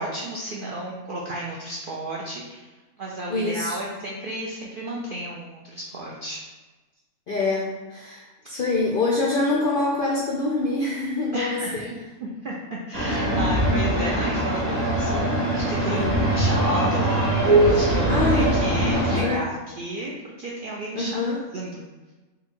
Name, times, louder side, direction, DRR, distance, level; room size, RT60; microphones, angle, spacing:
voice 1, 0.0-2.7 3.0-6.4 11.3-11.9 12.2-21.2 21.5-21.8, right 1 dB, 75° right, -3 dB, 0.4 m, -33 dB
voice 2, 3.3-3.8 7.3-11.8 15.9-16.2 18.1-18.5 19.2-19.4 20.9-21.5, left 2 dB, 70° left, -3 dB, 0.5 m, -25 dB
sound 1, 12.9-19.2, right 1 dB, 45° right, 1.3 m, -22 dB
3.8 x 2.3 x 4.4 m, 1.2 s
omnidirectional pair, 1.5 m